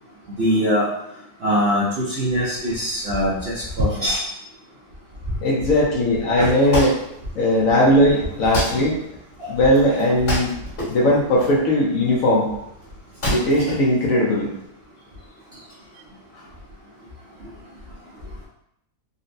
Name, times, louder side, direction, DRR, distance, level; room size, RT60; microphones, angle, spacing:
voice 1, 0.4-0.8 1.4-4.2 6.4-6.5 9.4-9.5, equal, 60° right, -8 dB, 0.6 m, -22 dB
voice 2, 5.4-7.0 7.3-9.0 9.5-10.5 10.9-12.5 13.2-14.5, equal, 65° left, -3 dB, 0.9 m, -18 dB
Wood, 6.3-14.7, left 1 dB, 45° left, 1.8 m, -30 dB
3.9 x 2.1 x 2.6 m, 0.77 s
omnidirectional pair, 1.8 m